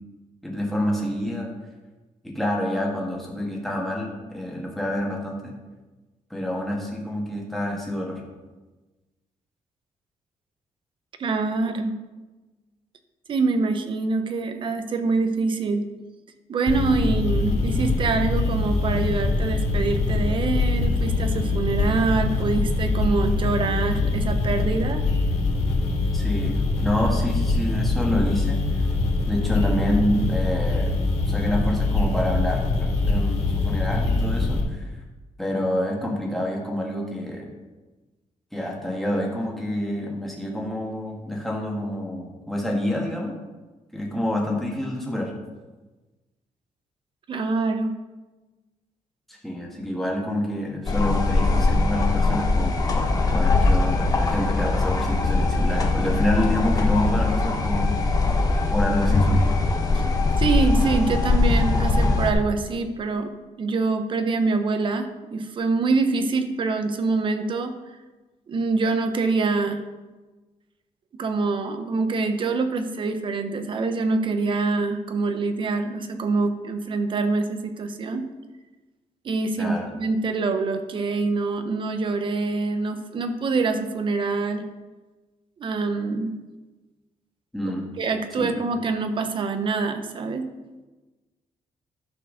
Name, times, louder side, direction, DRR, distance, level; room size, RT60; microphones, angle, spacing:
voice 1, 0.4-1.5 2.2-5.5 6.3-8.2 26.1-28.8 29.2-31.0 31.3-34.9 35.4-37.5 38.5-43.4 43.9-45.3 49.3-58.0 58.7-59.5 79.6-79.9 87.5-87.9 88.4-88.5, left 1 dB, ahead, -2 dB, 1.7 m, -27 dB
voice 2, 11.2-12.0 13.3-15.9 16.5-25.0 47.3-48.0 59.9-60.1 60.4-63.3 63.6-67.8 68.5-69.8 71.2-78.3 79.2-84.7 85.6-86.4 87.6-90.5, right 3 dB, 40° right, 8 dB, 0.9 m, -25 dB
sound 1, 16.7-34.6, left 3 dB, 55° left, 3.1 m, -23 dB
sound 2, 50.8-62.3, left 3 dB, 30° left, 1.0 m, -21 dB
12.0 x 4.7 x 6.4 m, 1.2 s
wide cardioid pair, 180°, 13 cm